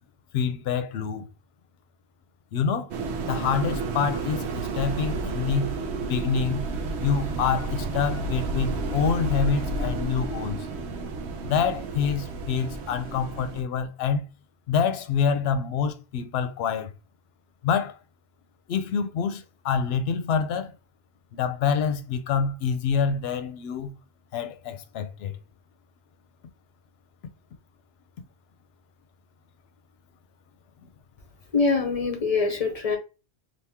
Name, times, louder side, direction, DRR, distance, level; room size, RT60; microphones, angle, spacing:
voice 1, 0.3-1.3 2.5-2.9 3.3-6.6 7.0-10.7 11.4-14.2 14.7-16.9 17.6-18.0 18.7-20.7 21.3-23.9 24.3-25.4 30.8-30.9, left 6 dB, 75° left, 0.8 m, -26 dB
sound 1, 2.9-13.6, right 3 dB, 85° right, 0.9 m, -31 dB
voice 2, 31.5-33.0, left 4 dB, 40° left, 0.7 m, -24 dB
3.4 x 2.8 x 2.8 m
omnidirectional pair, 1.1 m